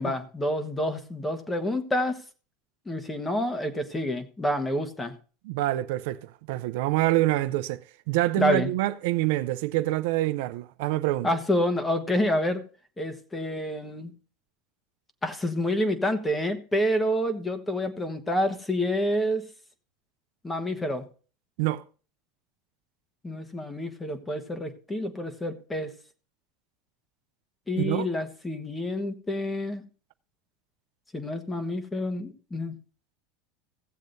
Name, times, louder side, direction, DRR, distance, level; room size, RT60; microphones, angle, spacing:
voice 1, 0.0-2.2 2.8-5.1 8.4-8.7 11.2-12.6 13.0-14.1 15.2-19.4 20.4-21.1 23.2-25.9 27.7-29.8 31.1-32.7, left 1 dB, 10° left, 1.2 m, -28 dB
voice 2, 5.5-7.8 8.1-11.3 21.6-21.8 27.8-28.1, right 16 dB, 70° right, 0.5 m, -26 dB
17.0 x 7.4 x 2.6 m
supercardioid pair, 125°, 0 cm